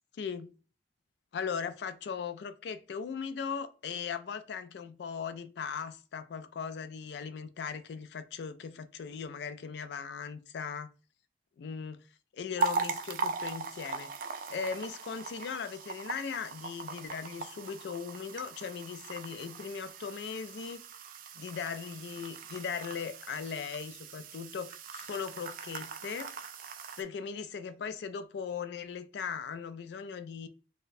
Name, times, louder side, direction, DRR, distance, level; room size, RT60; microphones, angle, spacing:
voice 1, 0.2-0.5 1.3-10.9 11.6-12.0 12.3-14.1 14.5-20.8 21.4-26.4 27.0-30.5, left 6 dB, 75° left, 0.3 m, -38 dB
sound 1, 12.6-27.0, right 4 dB, 50° right, 0.3 m, -39 dB
3.9 x 2.2 x 2.5 m
head